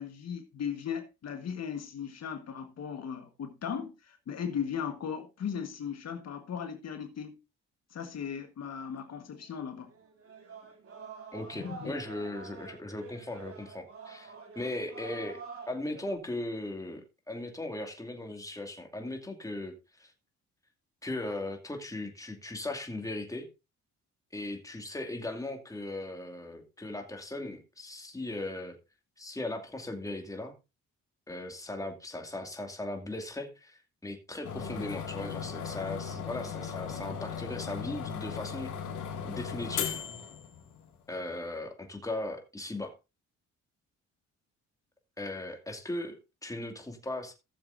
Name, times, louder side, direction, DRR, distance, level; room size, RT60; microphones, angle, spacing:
voice 1, 0.0-7.4 7.9-9.9 11.5-11.9, left 7 dB, 60° left, 1.5 m, -37 dB
sound 1, 9.5-9.6 9.9-16.2, right 5 dB, 50° right, 2.7 m, -48 dB
voice 2, 11.3-15.4 15.7-20.1 21.0-23.5 24.3-28.8 29.2-30.5 31.3-38.7 39.2-40.0 41.1-42.9 45.2-47.3, left 2 dB, 10° left, 2.4 m, -38 dB
sound 2, 34.4-40.9, left 7 dB, 80° left, 2.3 m, -37 dB
17.0 x 7.1 x 2.6 m
cardioid pair, 90°, 30 cm